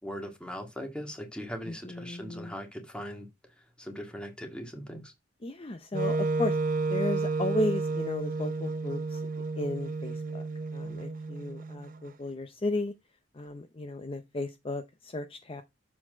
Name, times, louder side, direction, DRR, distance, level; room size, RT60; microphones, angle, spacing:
voice 1, 0.0-3.3 3.8-5.1, equal, 5° left, 1.9 m, -40 dB
voice 2, 1.6-2.5 5.4-10.4 10.7-12.9 13.3-15.6, left 2 dB, 30° left, 0.7 m, -34 dB
Wind instrument woodwind instrument, 5.9-12.0, right 3 dB, 50° right, 0.7 m, -31 dB
7.4 x 4.2 x 5.0 m
head